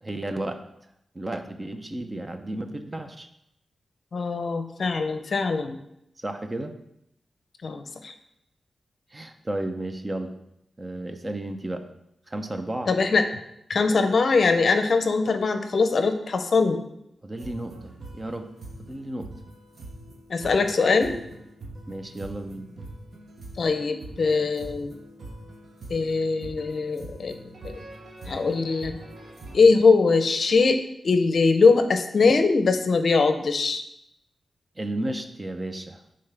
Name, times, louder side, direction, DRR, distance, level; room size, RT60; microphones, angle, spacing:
voice 1, 0.0-0.6 1.1-3.3 6.2-6.7 9.1-10.3 10.8-11.9 12.3-12.9 17.2-18.5 18.8-19.3 21.9-22.7 34.8-36.0, right 1 dB, 20° right, 7 dB, 0.6 m, -33 dB
voice 2, 4.1-5.8 7.6-8.1 12.9-13.2 13.7-16.8 20.3-21.1 23.6-24.9 25.9-27.4 27.6-27.8 28.3-29.0 29.5-33.8, left 4 dB, 55° left, 8 dB, 0.6 m, -22 dB
sound 1, 17.4-29.6, right 2 dB, 60° right, 0.9 m, -43 dB
9.5 x 3.8 x 3.4 m, 0.79 s
wide cardioid pair, 125°, 0 cm